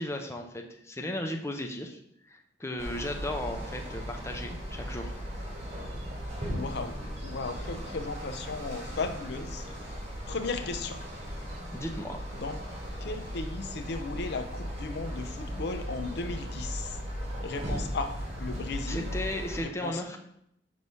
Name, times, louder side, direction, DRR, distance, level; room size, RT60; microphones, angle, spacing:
voice 1, 0.0-2.0 2.3-5.1 11.7-12.2 18.9-20.2, left 1 dB, 15° left, 3 dB, 0.6 m, -35 dB
sound 1, 2.8-19.6, equal, 35° right, 1.9 m, -37 dB
voice 2, 6.4-9.7 10.3-11.0 12.4-12.6 13.0-17.0 17.4-19.1 19.6-20.2, left 3 dB, 60° left, 8 dB, 0.5 m, -36 dB
5.5 x 3.2 x 5.4 m, 0.74 s
head